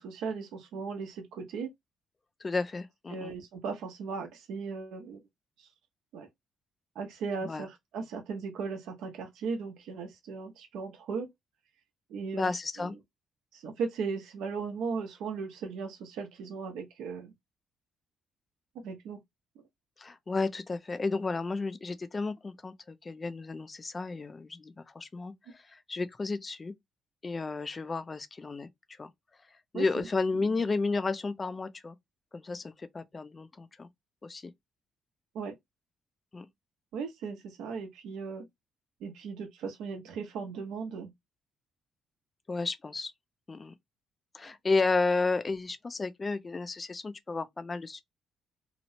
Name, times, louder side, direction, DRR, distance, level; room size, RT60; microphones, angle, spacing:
voice 1, 0.0-1.7 3.1-5.2 5.6-5.7 6.1-6.3 6.9-11.3 12.1-12.9 13.5-17.3 18.8-19.2 29.7-30.1 30.4-30.5 35.3-35.6 36.9-38.4 39.0-41.1, right 5 dB, 85° right, 0.8 m, -37 dB
voice 2, 2.4-3.3 7.4-7.7 12.3-13.0 20.0-26.7 27.2-28.7 29.0-29.1 29.7-32.0 32.3-33.9 34.2-34.5 36.3-36.5 42.5-43.1 43.5-43.7 44.3-48.0, left 3 dB, 25° left, 0.3 m, -32 dB
2.9 x 2.0 x 2.7 m
cardioid pair, 115°, 0 cm